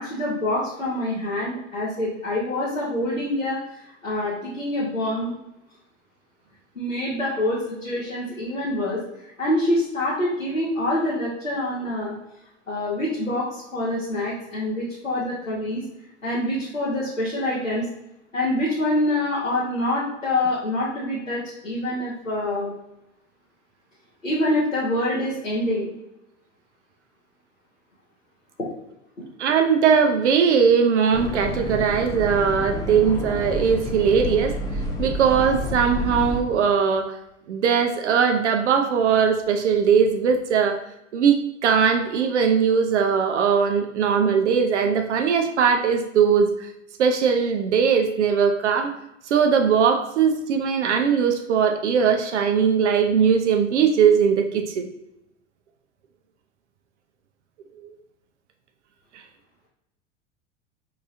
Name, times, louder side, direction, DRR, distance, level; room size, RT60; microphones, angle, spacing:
voice 1, 0.0-5.3 6.7-12.2 12.7-15.8 16.2-17.8 18.3-22.7 24.2-25.9, left 1 dB, 90° left, -8 dB, 1.2 m, -26 dB
voice 2, 29.4-34.5 35.0-37.2 37.5-40.8 41.1-46.7 47.0-48.9 49.3-54.9 57.8-57.9, right 6 dB, 65° right, 5 dB, 0.7 m, -20 dB
sound 1, 31.1-36.4, left 1 dB, 10° left, 0.5 m, -29 dB
4.6 x 3.8 x 2.6 m, 0.87 s
figure-of-eight pair, 85°, 38 cm